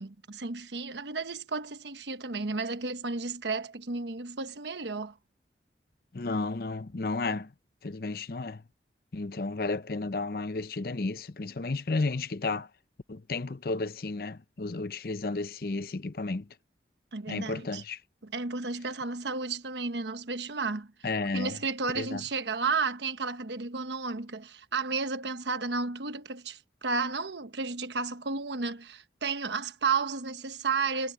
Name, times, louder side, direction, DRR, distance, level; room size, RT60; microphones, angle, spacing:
voice 1, 0.0-5.2 17.1-17.8 18.2-20.9 21.3-31.1, right 4 dB, 80° right, 1.1 m, -32 dB
voice 2, 6.1-7.5 7.8-8.6 9.1-12.7 13.1-16.5 17.3-18.0 21.0-21.6 21.9-22.2, left 3 dB, 55° left, 0.7 m, -32 dB
head